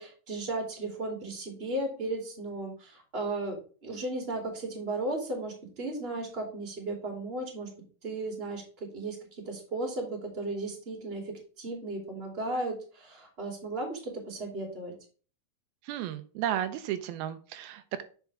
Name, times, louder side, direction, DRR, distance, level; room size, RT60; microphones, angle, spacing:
voice 1, 0.0-7.7 8.0-14.9, right 2 dB, 20° right, 1 dB, 2.4 m, -35 dB
voice 2, 15.8-18.0, right 11 dB, 90° right, 9 dB, 2.6 m, -33 dB
7.9 x 5.9 x 3.4 m, 0.39 s
omnidirectional pair, 4.3 m